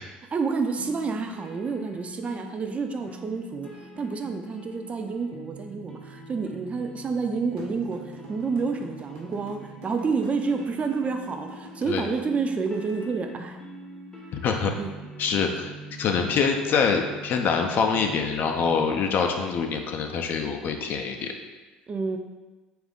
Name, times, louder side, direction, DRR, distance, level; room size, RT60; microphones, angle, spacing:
voice 1, 0.3-3.7 4.0-8.0 8.3-13.6 14.8-14.9 21.9-22.2, right 4 dB, 30° right, 6 dB, 0.4 m, -29 dB
sound 1, 0.8-19.0, right 1 dB, 15° left, 0.7 m, -44 dB
sound 2, 7.6-12.9, right 3 dB, 65° right, 0.9 m, -46 dB
voice 2, 15.2-15.7 16.0-21.3, left 5 dB, 45° left, 3 dB, 0.4 m, -25 dB
3.4 x 2.4 x 3.6 m, 1.2 s
figure-of-eight pair, 65°, 5 cm